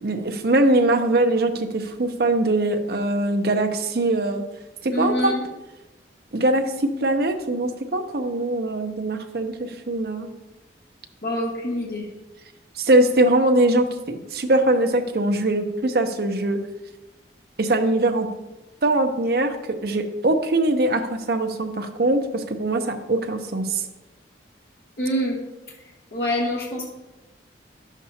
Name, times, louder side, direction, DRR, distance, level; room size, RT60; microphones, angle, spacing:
voice 1, 0.0-4.4 4.8-5.4 6.3-10.3 12.8-16.6 17.6-18.3 18.8-19.6 19.8-23.8, right 2 dB, 55° right, 6 dB, 0.7 m, -22 dB
voice 2, 4.9-5.3 11.2-12.0 25.0-25.4 26.1-26.9, equal, 55° left, -3 dB, 1.4 m, -25 dB
11.0 x 7.2 x 2.8 m, 1.1 s
head